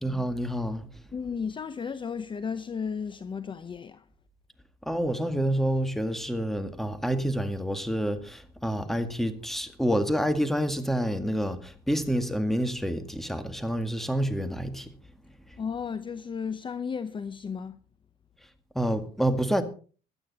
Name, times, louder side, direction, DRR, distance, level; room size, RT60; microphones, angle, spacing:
voice 1, 0.0-1.0 4.8-14.9 15.5-15.6 18.7-19.6, equal, ahead, 1.9 m, -28 dB
voice 2, 1.1-4.0 15.6-17.8, left 6 dB, 30° left, 0.8 m, -34 dB
17.0 x 12.0 x 4.2 m
cardioid pair, 110°, 17 cm